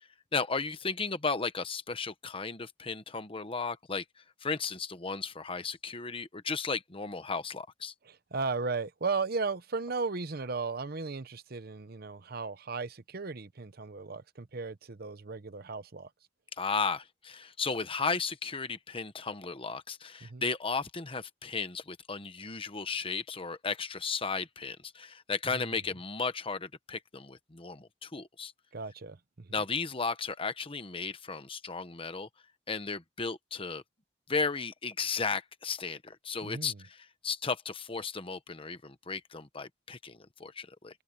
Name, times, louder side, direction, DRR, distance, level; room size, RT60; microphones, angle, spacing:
voice 1, 0.0-4.0 4.4-7.9 16.6-28.5 29.5-32.3 32.7-33.8 34.3-40.9, left 4 dB, 30° left, 1.1 m, -35 dB
voice 2, 8.0-16.1 20.2-20.4 25.5-25.7 28.7-29.5 36.4-36.8, right 4 dB, 55° right, 0.9 m, -36 dB
head